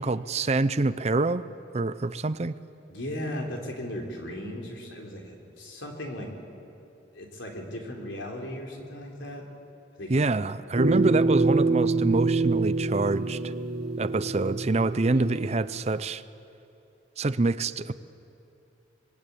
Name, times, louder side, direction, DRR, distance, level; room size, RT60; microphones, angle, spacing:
voice 1, 0.0-1.4 1.7-2.5 10.1-13.5 14.0-16.2 17.2-17.9, right 3 dB, 35° right, 14 dB, 0.5 m, -26 dB
voice 2, 2.9-6.3 7.1-9.5 10.0-10.3, left 1 dB, 75° left, 1 dB, 4.0 m, -37 dB
sound 1, 10.8-15.7, right 3 dB, 55° right, 1.4 m, -26 dB
26.0 x 21.5 x 8.5 m, 2.8 s
head